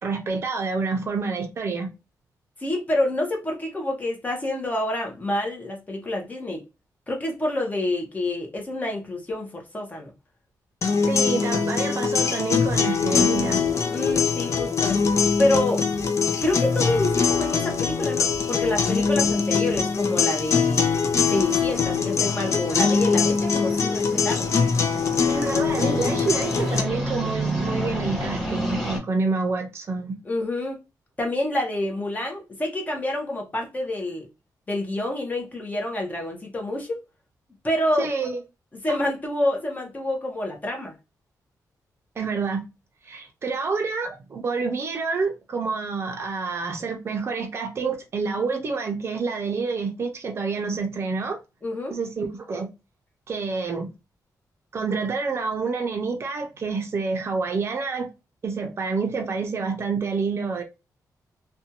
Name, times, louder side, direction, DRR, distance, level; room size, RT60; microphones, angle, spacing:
voice 1, 0.0-1.9 11.0-13.6 25.3-30.2 38.0-38.4 38.9-39.0 42.2-42.6 43.0-51.4 51.9-52.7 53.3-53.9 54.7-58.1 58.4-60.6, right 4 dB, 40° right, 0.5 m, -28 dB
voice 2, 2.6-6.6 7.1-10.1 13.9-15.1 15.4-15.8 16.4-21.0 21.3-24.5 30.3-30.8 31.2-34.3 34.7-37.0 37.6-38.1 38.8-40.9 51.6-51.9, left 1 dB, 25° left, 0.8 m, -27 dB
sound 1, 10.8-26.8, left 5 dB, 45° left, 0.4 m, -23 dB
sound 2, 12.6-21.9, right 1 dB, 85° left, 1.2 m, -43 dB
sound 3, 21.2-29.0, equal, ahead, 1.3 m, -31 dB
2.5 x 2.2 x 2.8 m
wide cardioid pair, 130°, 7 cm